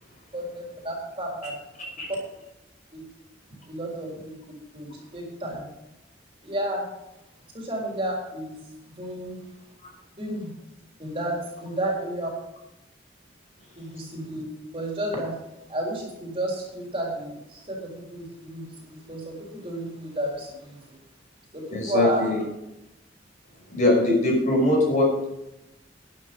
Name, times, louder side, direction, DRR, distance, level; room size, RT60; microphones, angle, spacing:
voice 1, 0.3-1.5 2.9-3.0 3.6-4.3 4.7-5.6 6.4-6.9 7.5-8.5 9.0-9.4 10.2-10.5 11.0-12.3 13.8-14.4 14.7-15.3 15.7-21.0 21.5-22.3, right 1 dB, 30° right, -2 dB, 3.9 m, -31 dB
voice 2, 21.7-22.4 23.7-25.2, left 1 dB, 45° left, -1 dB, 5.7 m, -21 dB
11.0 x 10.5 x 5.4 m, 0.90 s
head